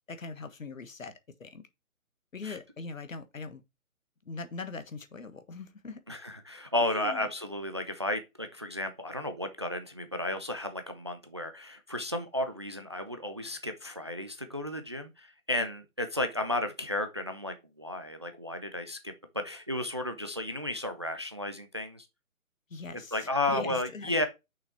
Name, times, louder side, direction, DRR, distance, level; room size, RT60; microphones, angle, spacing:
voice 1, 0.1-1.1 1.4-1.7 2.3-3.6 4.2-6.0 6.8-7.3 22.7-24.3, left 4 dB, 65° left, 1.5 m, -41 dB
voice 2, 6.1-22.1 23.1-24.3, left 1 dB, 20° right, 0.5 m, -33 dB
6.3 x 5.7 x 4.2 m
figure-of-eight pair, 135°, 42 cm